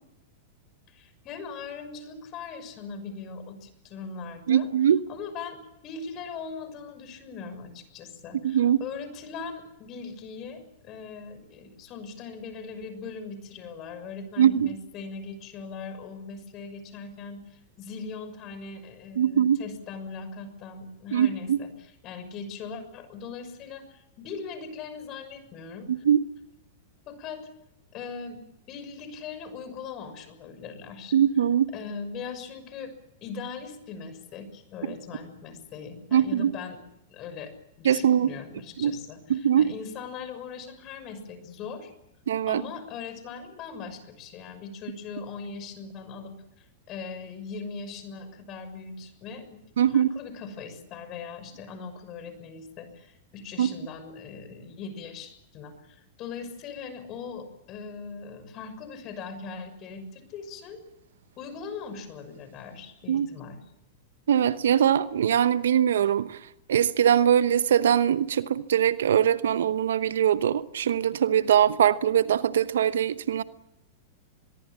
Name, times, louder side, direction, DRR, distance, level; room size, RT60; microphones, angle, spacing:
voice 1, 0.9-4.7 5.1-26.0 27.1-27.5 27.9-28.4 28.7-31.2 31.7-32.9 33.2-36.8 37.1-41.9 42.5-49.6 49.9-60.8 61.4-63.6, left 5 dB, 40° left, 6.3 m, -40 dB
voice 2, 4.5-5.0 8.4-8.8 14.4-14.7 19.2-19.6 21.1-21.6 25.9-26.2 31.1-31.7 36.1-36.5 37.8-38.3 38.8-38.9 39.3-39.7 42.3-42.6 49.8-50.1 53.6-53.7 63.1-63.3 64.3-66.4 66.7-73.4, right 9 dB, 75° right, 1.0 m, -22 dB
24.0 x 22.0 x 7.4 m
hypercardioid pair, 105°, 0 cm